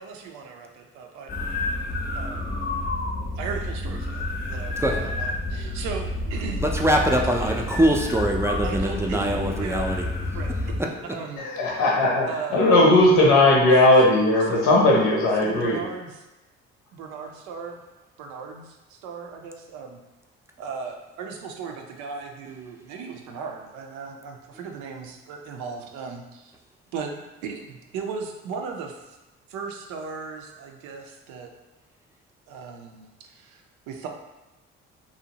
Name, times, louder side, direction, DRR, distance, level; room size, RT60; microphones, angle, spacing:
voice 1, 0.0-1.3 2.2-2.5 3.4-6.7 8.6-9.8 10.3-11.5 12.3-12.7 13.2-13.7 14.5-14.6 15.4-16.3 16.9-17.8 18.2-20.0 20.6-26.5 26.9-29.2 29.5-31.5 32.5-34.1, right 5 dB, 80° right, 2 dB, 0.5 m, -37 dB
sound 1, 1.3-10.8, left 2 dB, 30° left, 0.6 m, -29 dB
voice 2, 6.6-10.1 10.8-11.2 24.5-24.8, right 1 dB, 10° right, 1 dB, 0.4 m, -23 dB
voice 3, 11.4-15.8, left 2 dB, 80° left, -2 dB, 0.8 m, -18 dB
2.6 x 2.0 x 2.8 m, 1.1 s
supercardioid pair, 60°, 29 cm